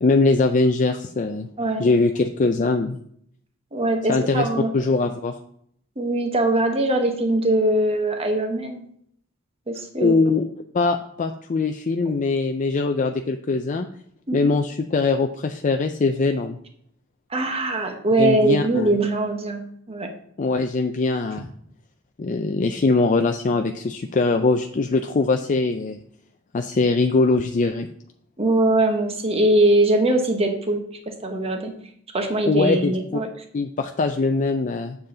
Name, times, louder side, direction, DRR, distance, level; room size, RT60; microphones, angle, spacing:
voice 1, 0.0-1.5 1.8-3.0 4.1-4.5 4.7-5.4 10.0-13.9 14.3-16.6 18.2-18.9 20.4-21.5 22.2-26.0 26.5-27.9 32.5-33.2 33.5-35.0, left 3 dB, 40° left, 6 dB, 0.4 m, -22 dB
voice 2, 3.7-4.7 6.0-8.8 9.7-10.1 14.3-14.6 17.3-20.1 28.4-31.7 32.1-33.3, right 1 dB, 30° right, 4 dB, 1.2 m, -22 dB
7.7 x 7.1 x 3.9 m, 0.67 s
head